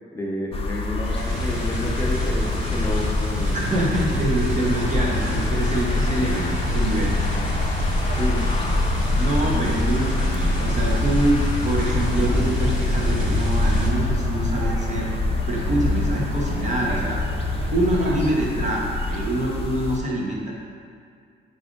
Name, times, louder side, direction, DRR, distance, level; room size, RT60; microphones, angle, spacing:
voice 1, 0.1-3.9 8.0-8.6 9.4-9.9, left 1 dB, 15° left, -3 dB, 0.7 m, -30 dB
sound 1, 0.5-20.0, left 2 dB, 30° left, 0.4 m, -26 dB
sound 2, 1.0-13.9, left 2 dB, 5° right, 1.1 m, -26 dB
sound 3, 3.4-18.3, right 4 dB, 65° right, 0.5 m, -35 dB
voice 2, 3.5-7.1 9.2-15.1 15.5-17.2 17.7-20.5, right 1 dB, 35° right, -2 dB, 0.9 m, -25 dB
4.8 x 2.6 x 3.6 m, 2.2 s
cardioid pair, 90°, 20 cm